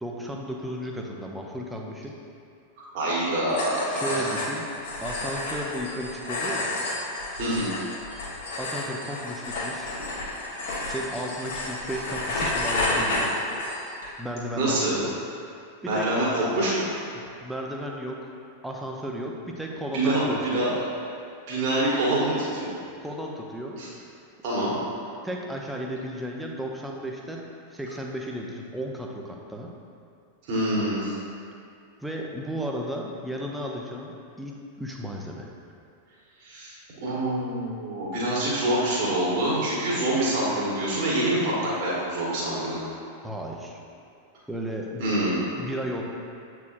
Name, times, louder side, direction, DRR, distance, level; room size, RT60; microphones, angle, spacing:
voice 1, 0.0-2.2 3.9-4.7 5.0-6.8 8.2-10.0 10.9-13.4 14.2-15.1 15.8-16.1 17.1-18.3 18.6-20.8 23.0-23.8 25.2-29.7 32.0-35.5 43.2-43.8 44.5-45.0 45.5-46.0, equal, 5° right, -1 dB, 0.7 m, -34 dB
voice 2, 2.9-4.3 7.4-7.7 14.6-14.9 15.9-16.9 19.9-20.7 21.5-22.8 23.7-23.9 24.4-24.7 30.5-31.1 36.4-36.8 37.0-42.8 45.0-45.4, right 1 dB, 45° right, -7 dB, 1.5 m, -25 dB
sound 1, 3.5-14.1, left 2 dB, 60° left, 1.4 m, -31 dB
8.0 x 4.8 x 2.6 m, 2.4 s
figure-of-eight pair, 90°, 0 cm